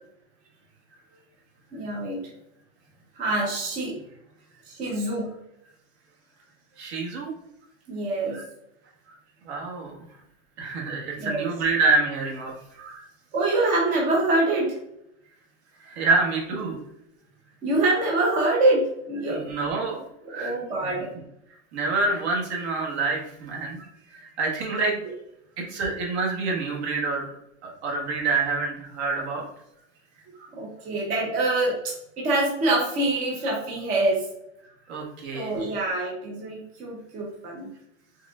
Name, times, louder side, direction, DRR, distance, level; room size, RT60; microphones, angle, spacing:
voice 1, 1.7-2.2 3.2-3.9 4.7-5.3 7.9-8.4 11.2-11.5 13.3-14.8 17.6-19.4 20.3-21.1 30.5-34.3 35.3-37.7, right 2 dB, 20° right, -3 dB, 0.6 m, -25 dB
voice 2, 6.8-7.3 8.3-8.4 9.4-10.0 10.6-13.0 15.8-16.8 19.3-20.6 20.8-20.9 21.7-23.9 24.1-25.0 25.6-27.2 27.6-29.4 30.4-30.5 34.9-35.6, right 3 dB, 55° right, -1 dB, 1.6 m, -27 dB
5.3 x 3.6 x 2.4 m, 0.81 s
supercardioid pair, 165°, 39 cm